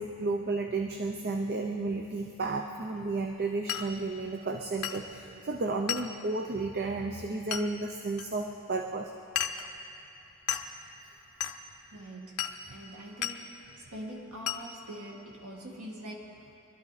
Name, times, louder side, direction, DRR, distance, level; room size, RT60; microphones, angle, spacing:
voice 1, 0.0-9.1, right 3 dB, 45° right, 3 dB, 0.7 m, -32 dB
Glass, 3.7-3.9 4.8-5.1 5.9-6.1 7.5-7.7 8.2-8.3 9.4-9.7 10.5-10.7 11.4-11.6 12.4-12.6 13.2-13.4 14.5-14.6, left 9 dB, 85° left, 0.7 m, -33 dB
voice 2, 11.9-16.6, right 1 dB, 80° right, -2 dB, 2.1 m, -44 dB
23.0 x 13.0 x 4.1 m, 2.9 s
head